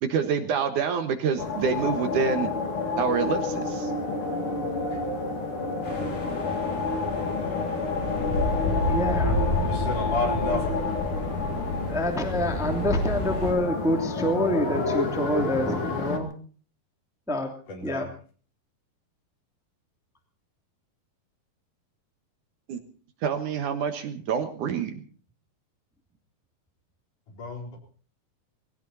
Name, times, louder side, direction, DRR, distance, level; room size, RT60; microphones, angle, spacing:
voice 1, 0.0-2.5 3.0-3.9 22.7-22.8 23.2-25.0, right 6 dB, 65° right, 7 dB, 2.6 m, -27 dB
sound 1, 1.4-16.2, left 3 dB, 40° left, 2.8 m, -29 dB
sound 2, 5.8-13.5, left 2 dB, 75° left, 7.4 m, -30 dB
voice 2, 8.9-9.4 11.9-16.3 17.3-17.5 17.8-18.1, equal, ahead, 4 dB, 2.1 m, -27 dB
voice 3, 9.7-10.9 17.7-18.0 27.3-27.8, left 3 dB, 60° left, 2 dB, 5.5 m, -31 dB
20.5 x 17.0 x 4.2 m, 0.42 s
omnidirectional pair, 4.2 m